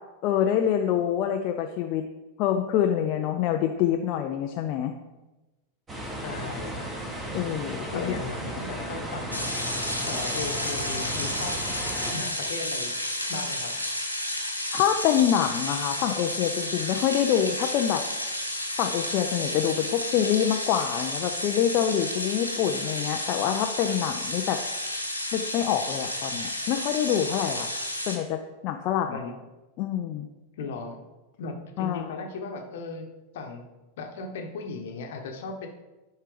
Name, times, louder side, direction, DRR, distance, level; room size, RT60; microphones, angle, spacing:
voice 1, 0.2-2.0 2.4-4.9 7.3-8.1 14.7-18.0 18.8-24.6 25.3-27.7 28.1-29.2 29.8-30.3 31.8-32.0, left 10 dB, 40° left, 4 dB, 0.5 m, -26 dB
sound 1, 5.9-12.1, right 1 dB, 20° right, 2.0 m, -35 dB
voice 2, 6.2-6.9 7.9-9.5 10.1-11.6 12.1-12.9 13.3-13.7 29.1-29.3 30.6-31.0 31.4-33.1 33.3-33.6 34.0-35.7, left 4 dB, 55° left, 4 dB, 1.1 m, -36 dB
sound 2, 9.3-28.2, left 1 dB, 90° left, 1.2 m, -31 dB
11.0 x 5.5 x 3.3 m, 1.1 s
figure-of-eight pair, 90°, 0 cm